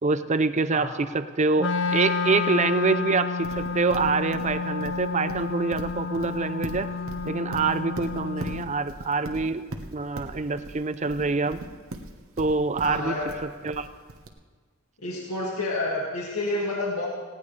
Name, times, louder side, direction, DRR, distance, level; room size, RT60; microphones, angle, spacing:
voice 1, 0.0-6.9 7.2-9.6 9.9-11.6 12.4-13.1 13.6-13.9, right 4 dB, 35° right, 12 dB, 0.5 m, -25 dB
voice 2, 0.7-1.1 12.8-13.4 15.0-17.1, left 2 dB, 80° left, -3 dB, 2.2 m, -29 dB
Wind instrument woodwind instrument, 1.6-8.7, left 4 dB, 55° left, 0.9 m, -30 dB
Livestock farm animals working animals, 3.4-14.3, right 1 dB, 70° right, 1.2 m, -39 dB
18.5 x 17.0 x 3.3 m, 1.5 s
head